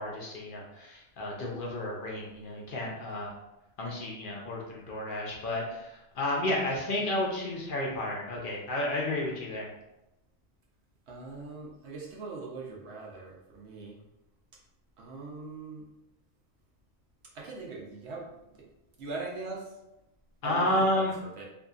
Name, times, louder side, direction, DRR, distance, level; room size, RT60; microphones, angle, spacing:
voice 1, 0.0-3.3 3.8-9.7 20.4-21.2, left 1 dB, 60° left, -2 dB, 0.6 m, -31 dB
voice 2, 11.1-14.0 15.0-15.8 17.3-18.2 19.0-19.6 20.4-20.7 21.0-21.1 21.4-21.5, right 3 dB, 75° right, -2 dB, 0.9 m, -41 dB
2.7 x 2.5 x 2.3 m, 0.92 s
omnidirectional pair, 1.2 m